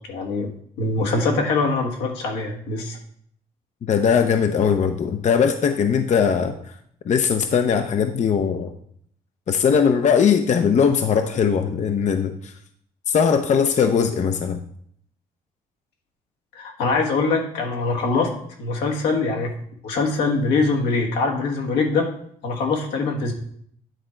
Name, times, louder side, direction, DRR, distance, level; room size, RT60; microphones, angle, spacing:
voice 1, 0.1-0.5 0.8-3.0 16.5-18.3 18.6-19.5 19.8-22.1 22.4-23.3, left 3 dB, 85° left, 1 dB, 1.3 m, -23 dB
voice 2, 3.8-6.5 7.1-8.7 9.5-12.5 13.1-14.6, left 6 dB, 45° left, 7 dB, 0.6 m, -20 dB
9.1 x 3.7 x 4.3 m, 0.65 s
supercardioid pair, 70°, 17 cm